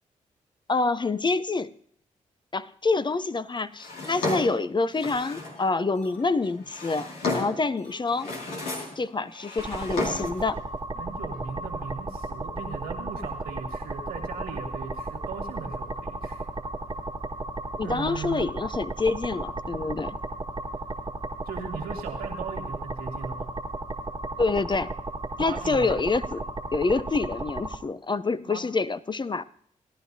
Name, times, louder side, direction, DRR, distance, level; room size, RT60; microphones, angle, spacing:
voice 1, 0.7-1.7 2.5-8.3 9.0-10.6 17.8-20.2 24.4-24.9 25.4-26.4 26.7-29.4, left 3 dB, 30° left, 14 dB, 0.6 m, -27 dB
Drawer open or close, 3.8-5.6 6.4-7.7 8.1-9.0 9.3-10.4, left 2 dB, 85° left, 2.4 m, -33 dB
sound 1, 5.1-5.2 5.5-5.6 5.9-8.0 8.2-8.4 8.7-8.9 9.2-9.3 9.6-9.7 10.0-10.1 10.5-10.6 10.9-11.0 11.3-11.4, left 3 dB, 60° left, 6.2 m, -50 dB
sound 2, 9.6-27.8, right 2 dB, 30° right, 1.4 m, -34 dB
voice 2, 11.0-16.5 17.8-18.5 21.5-23.5 25.4-25.9 28.4-28.6, right 6 dB, 85° right, 2 dB, 2.1 m, -38 dB
18.0 x 11.0 x 2.7 m, 0.68 s
supercardioid pair, 40°, 15 cm